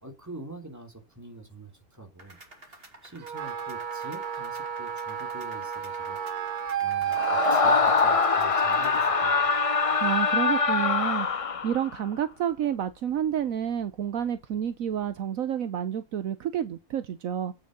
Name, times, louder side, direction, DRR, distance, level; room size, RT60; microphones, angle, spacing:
voice 1, 0.0-2.4 2.7-6.2 6.8-9.7, right 2 dB, 10° right, 2.9 m, -45 dB
sound 1, 2.2-9.0, right 2 dB, 40° right, 2.9 m, -51 dB
Wind instrument woodwind instrument, 3.2-10.9, right 8 dB, 85° right, 1.6 m, -32 dB
Screaming, 7.1-11.9, left 5 dB, 50° left, 0.4 m, -24 dB
voice 2, 10.0-11.3 11.6-17.5, right 9 dB, 70° right, 1.2 m, -29 dB
8.8 x 6.5 x 5.3 m
omnidirectional pair, 1.5 m